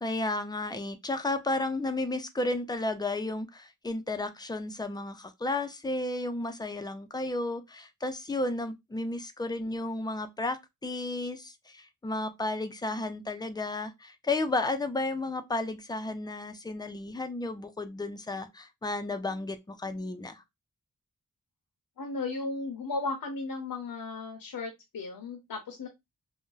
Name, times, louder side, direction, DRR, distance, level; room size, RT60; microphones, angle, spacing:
voice 1, 0.0-20.4, left 2 dB, 10° left, 0.4 m, -33 dB
voice 2, 22.0-25.9, left 3 dB, 75° left, 0.6 m, -35 dB
2.5 x 2.0 x 3.8 m
wide cardioid pair, 75°, 35 cm